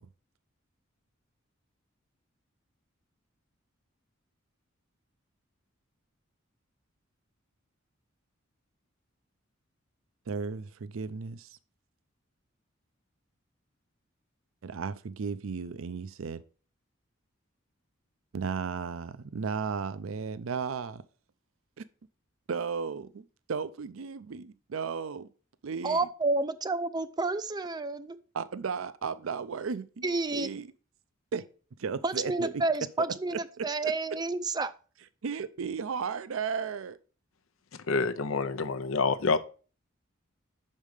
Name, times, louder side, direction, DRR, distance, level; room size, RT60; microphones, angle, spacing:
voice 1, 10.3-11.5 14.6-16.4 18.3-21.0 22.5-25.3 25.6-26.0 28.3-30.1 30.3-30.7 31.3-31.4 31.8-32.5 33.0-33.9 35.2-37.0, right 5 dB, 80° right, 0.5 m, -35 dB
voice 2, 25.8-28.2 30.0-30.5 32.0-34.7, right 3 dB, 20° right, 0.4 m, -30 dB
voice 3, 37.9-39.4, left 4 dB, 90° left, 0.7 m, -27 dB
6.5 x 5.4 x 4.8 m
head